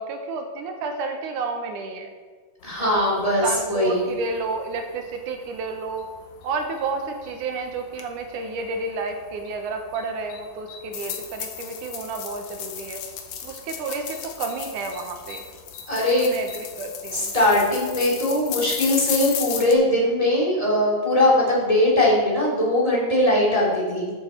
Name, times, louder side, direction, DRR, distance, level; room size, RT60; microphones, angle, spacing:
voice 1, 0.0-2.1 2.8-6.0 6.4-13.0 13.4-15.4 16.0-17.3, right 4 dB, 80° right, 5 dB, 2.6 m, -31 dB
sound 1, 2.6-19.7, left 8 dB, 65° left, 2.0 m, -36 dB
voice 2, 2.6-4.1 15.9-16.3 17.1-24.1, left 1 dB, 10° left, -5 dB, 2.6 m, -20 dB
13.0 x 7.9 x 4.4 m, 1.5 s
omnidirectional pair, 3.6 m